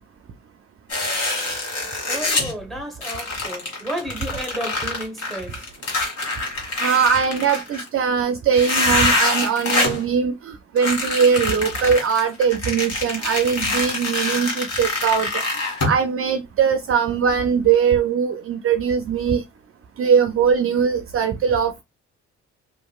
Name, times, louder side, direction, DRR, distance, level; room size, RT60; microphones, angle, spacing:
sound 1, 0.9-2.5 3.0-7.9 8.5-10.0 10.8-16.0, left 2 dB, 55° left, 1.6 m, -25 dB
voice 1, 2.1-5.6, right 1 dB, ahead, 1.1 m, -32 dB
voice 2, 6.8-15.3 15.9-19.4 20.0-21.8, right 6 dB, 45° right, 0.4 m, -20 dB
2.8 x 2.5 x 2.3 m
cardioid pair, 90°, 30 cm